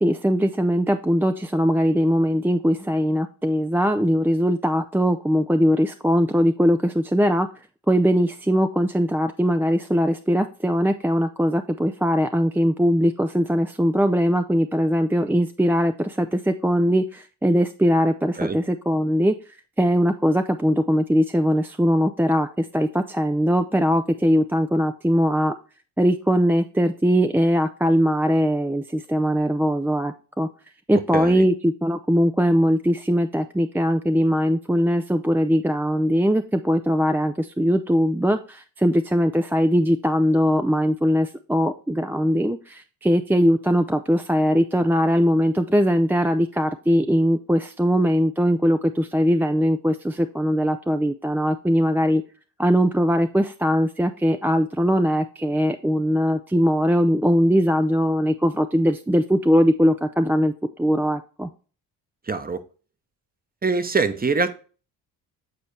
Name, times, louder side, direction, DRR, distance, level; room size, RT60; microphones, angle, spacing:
voice 1, 0.0-7.5 7.9-19.3 19.8-25.5 26.0-30.5 30.9-52.2 52.6-60.5 60.8-61.5, equal, 5° right, 0.4 m, -21 dB
voice 2, 30.9-31.4 62.3-62.6 63.6-64.5, right 4 dB, 20° right, 0.9 m, -24 dB
9.0 x 4.0 x 3.2 m
supercardioid pair, 65°, 43 cm